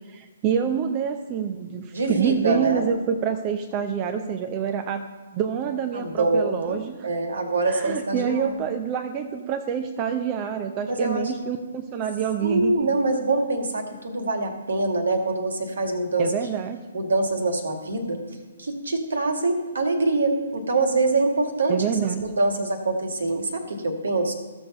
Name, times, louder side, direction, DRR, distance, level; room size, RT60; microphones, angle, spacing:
voice 1, 0.1-5.1 5.3-7.1 7.7-12.9 16.2-16.8 21.7-22.3, right 7 dB, 25° right, 7 dB, 0.7 m, -27 dB
voice 2, 1.9-2.9 5.9-6.8 7.0-8.6 10.9-11.3 12.4-16.3 16.9-18.2 18.6-21.8 22.2-24.3, right 2 dB, 65° right, 5 dB, 1.9 m, -24 dB
15.0 x 6.7 x 5.4 m, 1.4 s
figure-of-eight pair, 125°, 0 cm